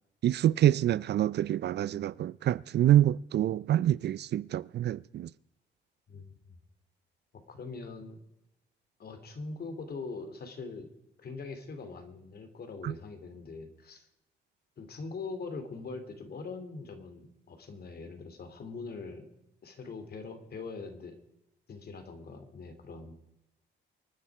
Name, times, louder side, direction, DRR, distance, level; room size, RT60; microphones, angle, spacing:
voice 1, 0.2-5.3 12.8-12.9, right 12 dB, 60° right, 0.4 m, -26 dB
voice 2, 6.1-6.6 7.5-8.2 9.0-10.9 11.2-14.1 14.8-19.3 19.6-21.2 21.7-23.1, left 4 dB, 50° left, 2.9 m, -42 dB
25.0 x 9.8 x 4.8 m
cardioid pair, 90°, 20 cm